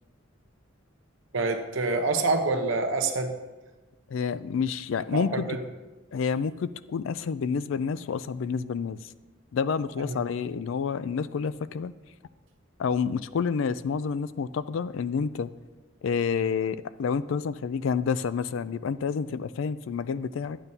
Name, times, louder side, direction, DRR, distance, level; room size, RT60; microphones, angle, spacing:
voice 1, 1.3-3.3 5.1-5.6 10.1-10.2, right 3 dB, 70° right, 5 dB, 0.9 m, -26 dB
voice 2, 4.1-5.3 6.1-9.1 9.5-11.9 12.8-15.5 16.0-20.6, left 6 dB, 70° left, 15 dB, 0.3 m, -29 dB
12.0 x 8.9 x 2.7 m, 1.2 s
head